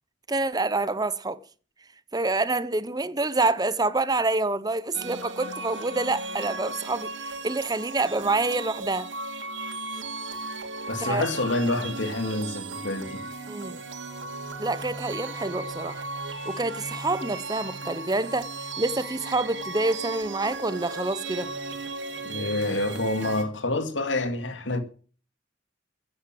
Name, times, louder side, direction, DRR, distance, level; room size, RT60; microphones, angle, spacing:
voice 1, 0.3-1.4 2.1-9.1 11.0-11.3 13.5-13.8 14.6-16.0 16.4-21.5, right 2 dB, 20° right, 0.8 m, -27 dB
sound 1, 4.9-23.4, right 3 dB, 80° right, 3.0 m, -36 dB
voice 2, 10.9-13.2 22.2-24.8, left 2 dB, 85° left, 2.3 m, -27 dB
15.5 x 9.6 x 7.6 m
head